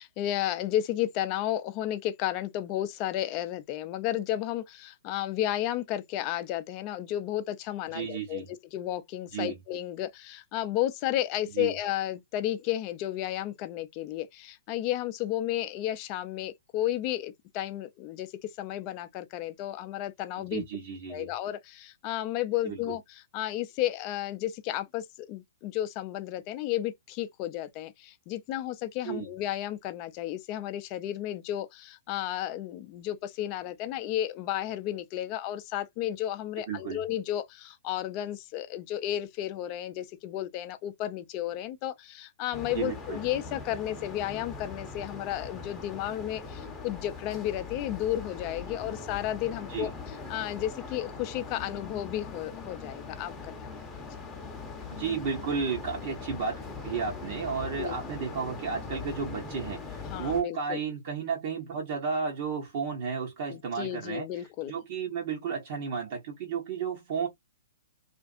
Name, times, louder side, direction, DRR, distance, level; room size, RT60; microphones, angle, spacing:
voice 1, 0.0-20.7 21.1-49.9 50.3-53.5 57.7-57.9 60.1-60.8 63.5-64.7, left 13 dB, 35° left, 0.4 m, -33 dB
voice 2, 7.9-8.5 9.3-9.6 11.5-11.7 20.5-21.3 22.6-23.0 29.0-29.3 36.7-37.0 42.7-43.2 49.7-49.9 54.9-67.3, right 6 dB, 50° right, 0.9 m, -33 dB
sound 1, 42.5-60.4, left 4 dB, 10° left, 0.8 m, -41 dB
2.5 x 2.4 x 2.4 m
hypercardioid pair, 125°, 0 cm